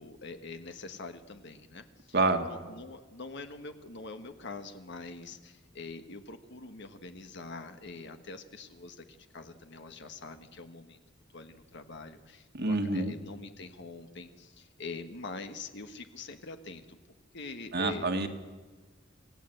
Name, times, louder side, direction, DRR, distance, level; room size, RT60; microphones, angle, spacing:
voice 1, 0.0-2.2 2.5-11.0 11.3-17.0 17.3-18.1, left 3 dB, 60° left, 7 dB, 1.4 m, -44 dB
voice 2, 2.1-2.5 12.5-13.1 17.7-18.3, right 2 dB, 55° right, 4 dB, 1.8 m, -27 dB
27.5 x 16.0 x 7.9 m, 1.3 s
head